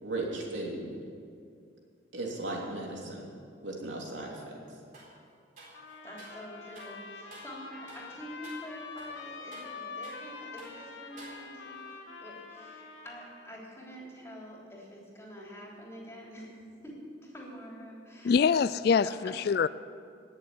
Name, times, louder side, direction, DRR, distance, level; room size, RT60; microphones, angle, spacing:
voice 1, 0.0-0.9 2.1-3.2 3.6-4.5, right 2 dB, 75° right, -2 dB, 3.2 m, -36 dB
sound 1, 4.9-5.2 5.6-6.4 6.7-7.0 7.3-7.6 7.9-8.1 8.4-8.7 9.0-10.3 10.6-10.8 11.2-11.7, right 2 dB, 45° right, 4.2 m, -51 dB
sound 2, 5.7-13.5, left 4 dB, 75° left, 2.1 m, -45 dB
voice 2, 6.0-11.8 12.2-18.6 19.0-19.7, equal, 15° left, -3 dB, 3.4 m, -46 dB
voice 3, 18.2-19.7, left 6 dB, 55° left, 16 dB, 0.3 m, -24 dB
18.5 x 7.1 x 9.2 m, 2.3 s
head